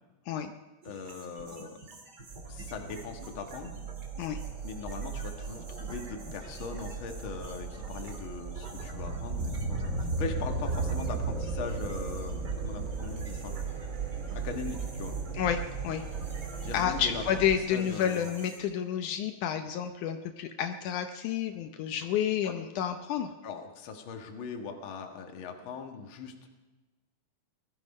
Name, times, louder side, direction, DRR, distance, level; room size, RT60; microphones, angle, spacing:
voice 1, 0.8-1.8 2.5-3.7 4.6-13.5 14.4-15.2 16.6-17.4 17.7-18.3 22.4-22.5 23.4-26.5, left 5 dB, 45° left, 4 dB, 2.0 m, -40 dB
sound 1, 0.8-18.6, right 2 dB, 35° right, 2.7 m, -49 dB
sound 2, 2.3-17.6, right 4 dB, 85° right, 0.6 m, -36 dB
voice 2, 15.3-16.0 16.7-23.3, left 9 dB, 75° left, 7 dB, 2.2 m, -30 dB
20.0 x 13.0 x 5.4 m, 1.2 s
omnidirectional pair, 3.7 m